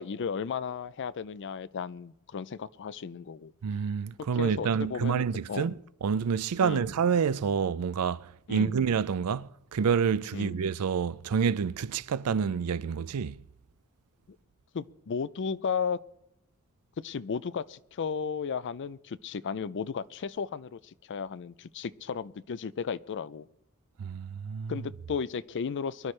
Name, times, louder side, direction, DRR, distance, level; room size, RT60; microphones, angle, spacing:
voice 1, 0.0-3.5 4.4-5.8 6.6-6.9 8.5-8.8 10.3-10.6 14.7-16.0 17.0-23.5 24.7-26.1, left 6 dB, 55° left, 0.4 m, -34 dB
voice 2, 3.6-13.4 24.0-24.8, right 6 dB, 85° right, 0.4 m, -28 dB
23.0 x 11.5 x 3.2 m
head